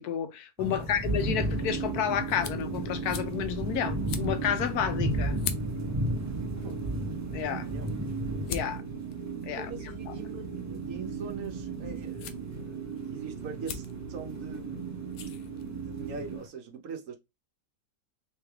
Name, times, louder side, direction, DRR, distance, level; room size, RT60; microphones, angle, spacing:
voice 1, 0.0-5.4 7.3-7.6 8.5-8.8 9.4-9.7 10.1-10.2, left 9 dB, 85° left, 1.2 m, -31 dB
sound 1, 0.6-16.4, equal, 15° right, 0.6 m, -35 dB
sound 2, 1.2-16.4, right 6 dB, 35° right, 1.7 m, -38 dB
sound 3, 2.2-16.1, left 8 dB, 70° left, 0.7 m, -45 dB
voice 2, 7.5-8.0 9.5-15.2 15.7-17.1, right 5 dB, 65° right, 1.1 m, -42 dB
3.3 x 3.2 x 3.4 m
omnidirectional pair, 1.6 m